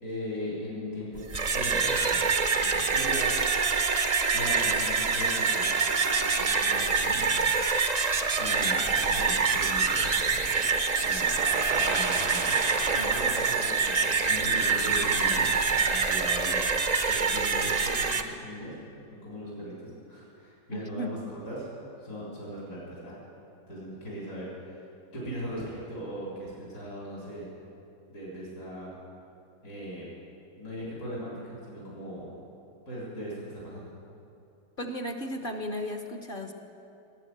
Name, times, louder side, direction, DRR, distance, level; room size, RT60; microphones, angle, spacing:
voice 1, 0.0-4.0 4.3-5.7 6.2-7.4 8.4-10.0 11.0-11.4 11.7-16.6 17.1-18.8 19.1-21.7 22.0-23.1 23.7-24.8 25.1-27.5 28.1-29.0 29.6-30.1 30.6-32.3 32.9-33.9, equal, 75° left, -7 dB, 4.4 m, -39 dB
sound 1, 1.2-18.2, right 5 dB, 45° right, 0.5 m, -25 dB
voice 2, 13.0-13.3 20.7-21.1 34.8-36.5, equal, 40° left, 5 dB, 0.9 m, -35 dB
18.5 x 9.5 x 7.8 m, 2.7 s
omnidirectional pair, 1.7 m